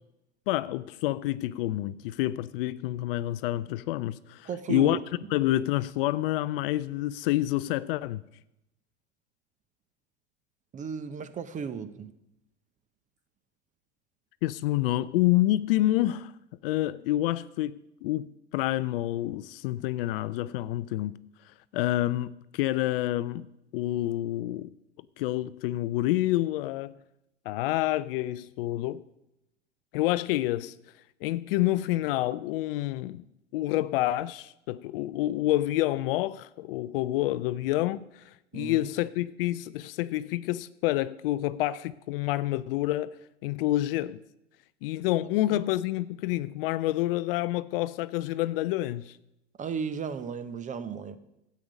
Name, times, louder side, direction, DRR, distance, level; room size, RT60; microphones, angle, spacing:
voice 1, 0.5-5.0 5.3-8.2 14.4-16.3 16.6-21.2 21.7-23.5 23.7-24.7 25.2-26.9 27.5-29.0 29.9-30.7 31.2-33.2 33.5-38.2 38.5-43.2 43.4-44.2 44.8-49.2, left 15 dB, 55° left, 0.5 m, -28 dB
voice 2, 4.4-5.0 10.7-12.1 38.5-38.9 45.5-45.6 49.6-51.2, right 6 dB, 20° right, 0.7 m, -35 dB
13.0 x 8.5 x 5.1 m
hypercardioid pair, 90°, 36 cm